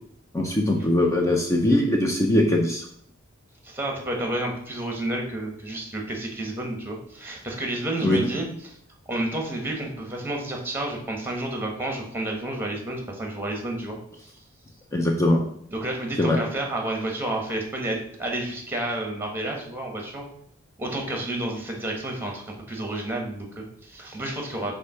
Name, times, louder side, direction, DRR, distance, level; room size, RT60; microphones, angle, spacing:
voice 1, 0.3-2.8 8.0-8.2 14.9-15.4 16.2-16.4, left 1 dB, 15° left, 0 dB, 0.6 m, -21 dB
voice 2, 3.6-8.7 9.1-14.0 15.7-20.2 20.8-24.8, right 1 dB, 10° right, 1 dB, 1.3 m, -30 dB
6.6 x 2.8 x 5.6 m, 0.66 s
head